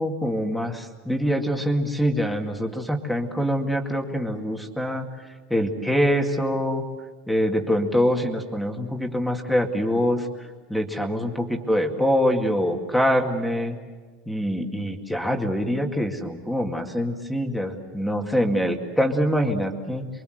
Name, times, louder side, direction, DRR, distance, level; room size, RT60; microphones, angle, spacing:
voice 1, 0.0-6.9 7.3-10.3 10.7-13.8 14.3-20.1, equal, ahead, 2 dB, 2.2 m, -24 dB
28.5 x 23.5 x 8.0 m, 1.4 s
supercardioid pair, 145°, 0 cm